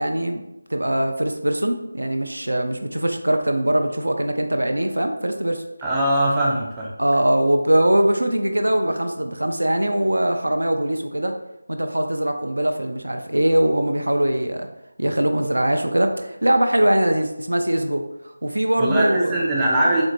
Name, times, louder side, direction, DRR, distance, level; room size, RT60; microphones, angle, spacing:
voice 1, 0.0-5.6 7.0-11.4 11.7-14.7 15.0-18.1 18.4-19.4, right 1 dB, 70° right, 5 dB, 0.4 m, -21 dB
voice 2, 5.8-6.9 18.8-20.0, right 1 dB, 10° right, -5 dB, 0.4 m, -21 dB
4.1 x 2.1 x 3.0 m, 0.88 s
figure-of-eight pair, 165°, 0 cm